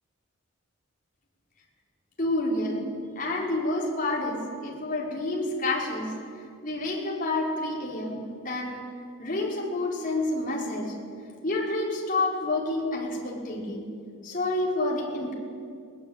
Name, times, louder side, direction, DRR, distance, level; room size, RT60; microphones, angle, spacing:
voice 1, 2.2-2.9 3.1-6.1 6.6-8.8 9.2-11.0 11.4-13.9 14.2-15.3, left 2 dB, 40° left, -3 dB, 4.8 m, -29 dB
22.0 x 18.5 x 8.9 m, 2.2 s
head